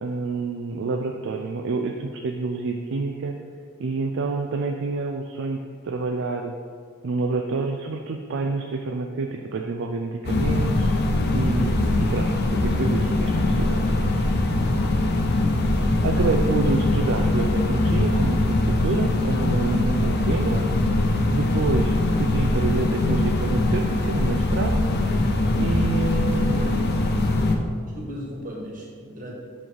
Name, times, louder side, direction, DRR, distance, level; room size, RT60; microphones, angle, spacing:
voice 1, 0.0-3.4 3.8-6.5 7.0-10.9 11.3-14.3 16.0-20.7 21.3-24.8 25.6-26.7, right 3 dB, 60° right, 3 dB, 0.4 m, -28 dB
sound 1, 10.2-27.5, left 2 dB, 50° left, 0.7 m, -22 dB
voice 2, 26.3-26.8 27.3-27.6 27.9-29.3, equal, 40° right, -2 dB, 1.5 m, -37 dB
6.2 x 5.2 x 4.7 m, 2.1 s
head